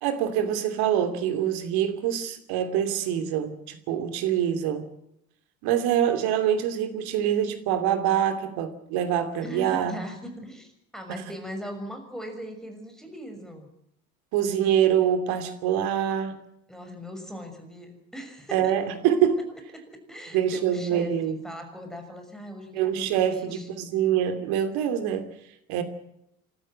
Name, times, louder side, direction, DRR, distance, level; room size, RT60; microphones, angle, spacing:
voice 1, 0.0-4.9 5.6-10.0 11.1-11.2 14.3-16.4 18.5-19.4 20.3-21.4 22.7-25.3 25.7-25.8, right 9 dB, 60° right, 8 dB, 2.9 m, -25 dB
voice 2, 9.4-13.7 16.7-18.9 19.4-19.5 19.7-23.7, equal, ahead, 5 dB, 6.3 m, -40 dB
29.5 x 12.5 x 7.7 m, 0.78 s
figure-of-eight pair, 60°, 42 cm